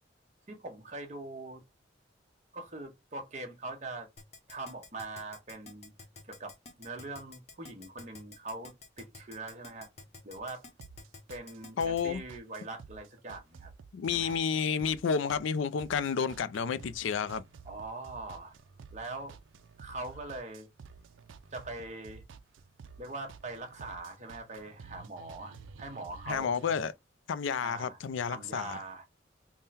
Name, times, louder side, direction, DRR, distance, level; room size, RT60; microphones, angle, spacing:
voice 1, 0.5-1.6 2.5-4.1 4.5-5.9 6.3-9.9 10.2-10.6 11.3-13.7 14.1-14.4 17.7-18.5 18.9-19.4 19.8-20.7 21.5-22.2 23.0-26.5 27.6-28.0 28.3-29.1, right 2 dB, 40° right, 0.9 m, -42 dB
Keyboard (musical), 4.2-12.0, left 3 dB, 35° left, 0.7 m, -50 dB
sound 1, 10.4-26.8, right 5 dB, 90° right, 0.4 m, -52 dB
voice 2, 11.8-12.2 13.9-17.4 26.3-26.9 27.3-28.8, left 6 dB, 85° left, 0.4 m, -30 dB
3.6 x 2.1 x 4.1 m
head